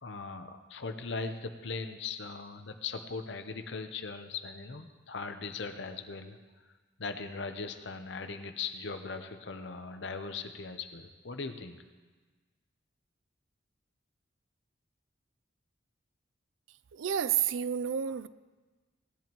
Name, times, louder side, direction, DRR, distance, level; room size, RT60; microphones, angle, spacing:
voice 1, 0.0-6.7 7.0-11.8, left 4 dB, 65° left, 7 dB, 0.8 m, -39 dB
voice 2, 16.9-18.3, right 9 dB, 80° right, 16 dB, 0.4 m, -30 dB
18.0 x 10.5 x 3.0 m, 1.3 s
head